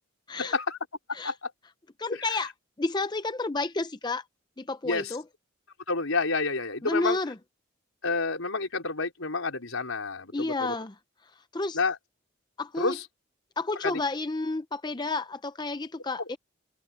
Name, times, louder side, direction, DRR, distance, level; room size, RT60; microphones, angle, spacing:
voice 1, 0.4-0.8 1.1-1.5 2.1-2.5 4.8-5.2 5.9-7.2 8.0-10.7 11.7-12.0 12.8-13.1 13.8-14.0, left 3 dB, 85° left, 4.3 m, -29 dB
voice 2, 2.0-2.5 2.8-4.2 4.6-5.2 6.8-7.4 10.3-10.9 11.5-11.8 12.6-13.0 13.6-16.4, left 3 dB, 20° left, 0.5 m, -30 dB
head